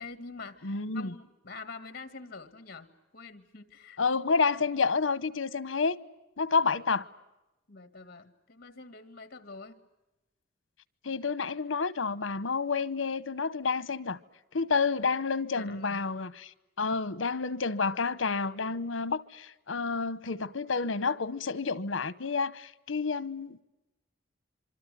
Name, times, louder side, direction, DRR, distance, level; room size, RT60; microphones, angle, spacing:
voice 1, 0.0-4.0 7.7-9.8 15.5-16.1, left 4 dB, 50° left, 2.0 m, -46 dB
voice 2, 0.6-1.1 4.0-6.0 6.4-7.1 11.0-14.2 14.5-16.5 16.8-23.6, left 4 dB, 80° left, 1.0 m, -29 dB
26.0 x 24.5 x 9.2 m
head